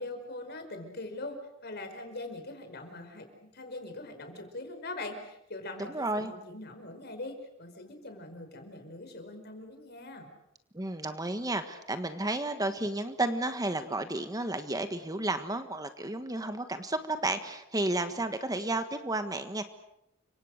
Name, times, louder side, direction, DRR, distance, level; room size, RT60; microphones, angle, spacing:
voice 1, 0.0-1.4 1.6-10.3, left 2 dB, 55° left, 6 dB, 5.2 m, -42 dB
voice 2, 5.9-6.3 10.7-19.6, right 2 dB, 20° right, 9 dB, 1.5 m, -32 dB
30.0 x 25.5 x 6.6 m, 0.81 s
head